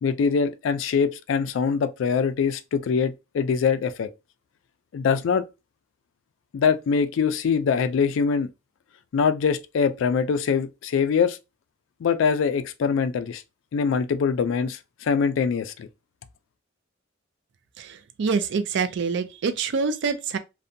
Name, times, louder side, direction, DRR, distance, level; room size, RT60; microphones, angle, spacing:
voice 1, 0.0-4.1 4.9-5.4 6.5-8.5 9.1-11.4 12.0-13.4 13.7-15.9, left 6 dB, 70° left, 0.3 m, -23 dB
voice 2, 17.8-20.4, right 5 dB, 65° right, 0.4 m, -26 dB
2.6 x 2.1 x 2.5 m
head